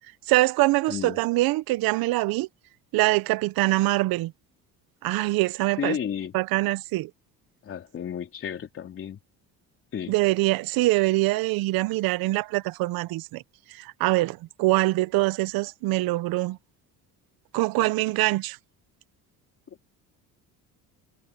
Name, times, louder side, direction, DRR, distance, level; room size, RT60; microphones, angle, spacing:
voice 1, 0.3-2.5 2.9-4.3 5.0-6.0 6.3-7.1 10.1-13.4 13.8-16.6 17.5-18.6, right 19 dB, 85° right, 0.8 m, -24 dB
voice 2, 5.8-6.4 7.6-9.2 9.9-10.1, left 8 dB, 40° left, 3.4 m, -32 dB
cardioid pair, 165°, 35 cm